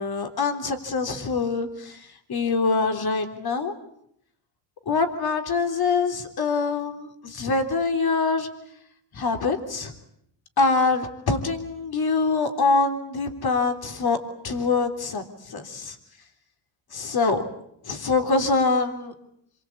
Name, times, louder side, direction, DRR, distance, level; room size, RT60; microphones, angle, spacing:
voice 1, 0.0-3.7 4.9-8.5 9.1-9.9 10.6-14.2 14.4-16.0 16.9-17.4 17.9-19.1, left 4 dB, 50° left, 6 dB, 3.6 m, -24 dB
27.5 x 23.0 x 8.6 m, 0.73 s
cardioid pair, 105°, 46 cm